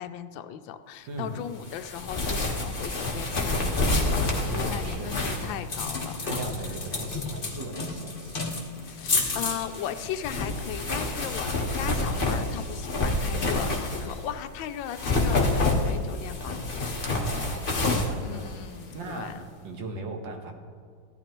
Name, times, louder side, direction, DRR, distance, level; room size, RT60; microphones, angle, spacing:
voice 1, 0.0-6.4 6.7-6.8 8.8-16.9 18.2-19.4, left 10 dB, 85° left, 9 dB, 1.4 m, -37 dB
voice 2, 1.1-1.4 4.5-5.6 6.2-8.4 17.0-20.5, right 2 dB, 75° right, 3 dB, 1.9 m, -38 dB
sound 1, 1.7-14.3 14.8-19.1, left 2 dB, 30° left, 1.2 m, -28 dB
15.5 x 12.0 x 3.0 m, 2.1 s
omnidirectional pair, 2.1 m